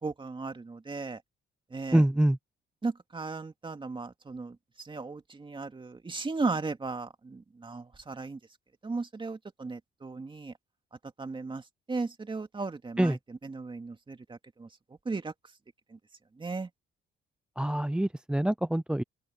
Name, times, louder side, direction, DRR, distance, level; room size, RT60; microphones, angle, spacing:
voice 1, 0.0-1.2 1.7-2.0 2.8-8.4 8.8-10.5 11.2-14.7 15.1-15.3 15.9-16.0 16.4-16.7, right 3 dB, 25° right, 2.3 m, -36 dB
voice 2, 1.9-2.4 13.0-13.2 17.6-19.0, right 1 dB, 5° right, 0.4 m, -25 dB
open air
cardioid pair, 90°, 20 cm